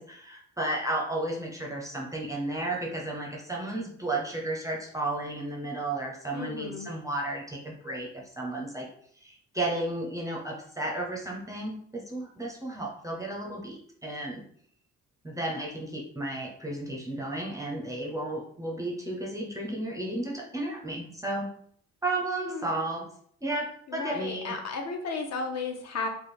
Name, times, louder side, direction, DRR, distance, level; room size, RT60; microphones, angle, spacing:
voice 1, 0.0-8.9 9.2-14.4 15.2-21.5 22.0-23.1 23.4-24.6, right 2 dB, 10° right, -2 dB, 0.5 m, -33 dB
voice 2, 6.3-6.9 22.4-22.8 23.9-26.1, left 4 dB, 55° left, 3 dB, 0.7 m, -34 dB
3.3 x 2.2 x 4.3 m, 0.62 s
cardioid pair, 145°, 33 cm